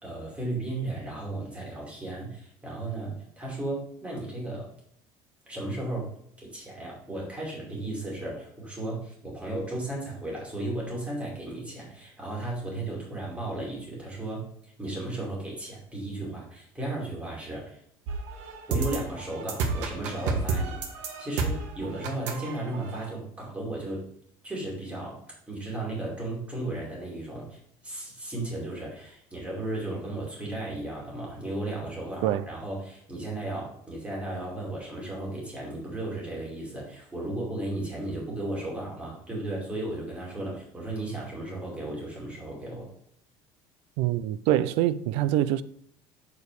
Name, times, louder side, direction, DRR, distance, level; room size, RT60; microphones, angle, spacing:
voice 1, 0.0-4.7 5.5-6.1 6.4-17.8 18.7-24.0 24.4-25.2 25.5-42.9, right 2 dB, 10° right, 2.4 m, -35 dB
sound 1, 18.1-23.1, right 4 dB, 80° right, 1.3 m, -31 dB
voice 2, 44.0-45.6, right 13 dB, 65° right, 0.4 m, -25 dB
7.2 x 4.6 x 4.7 m
cardioid pair, 170°, 11 cm